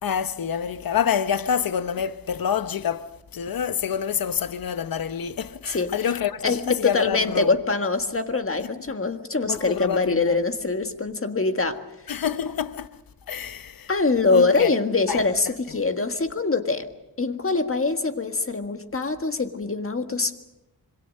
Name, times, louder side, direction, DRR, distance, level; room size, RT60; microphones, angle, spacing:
voice 1, 0.0-7.6 9.5-10.4 12.1-12.9 13.3-13.9 14.3-14.7 15.1-15.2, left 8 dB, 65° left, 0.9 m, -27 dB
voice 2, 6.4-11.8 13.9-16.9 17.2-20.4, left 3 dB, 35° left, 1.7 m, -24 dB
26.0 x 23.0 x 6.6 m
wide cardioid pair, 105°, 37 cm